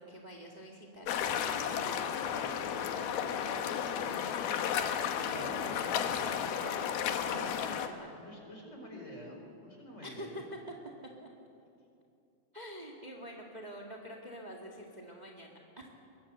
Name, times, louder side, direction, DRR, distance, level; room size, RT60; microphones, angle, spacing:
voice 1, 0.0-4.3 5.3-8.2 10.0-10.4 11.2-11.3 12.5-15.9, equal, 25° right, 0 dB, 1.0 m, -47 dB
sound 1, 1.1-7.9, left 8 dB, 90° left, 3.1 m, -33 dB
voice 2, 5.1-6.0 7.2-7.5 8.2-10.5, left 1 dB, 20° left, 1 dB, 4.9 m, -48 dB
23.5 x 21.5 x 8.0 m, 2.6 s
omnidirectional pair, 4.2 m